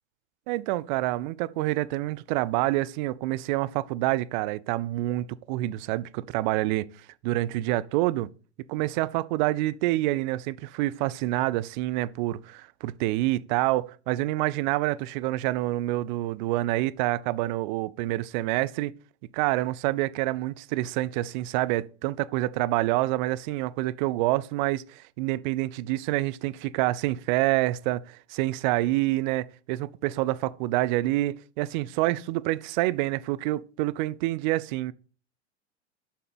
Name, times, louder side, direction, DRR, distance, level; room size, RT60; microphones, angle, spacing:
voice 1, 0.5-6.9 7.2-8.3 8.7-18.9 19.3-34.9, right 17 dB, 40° right, 0.4 m, -27 dB
7.2 x 5.7 x 5.4 m
figure-of-eight pair, 95°, 36 cm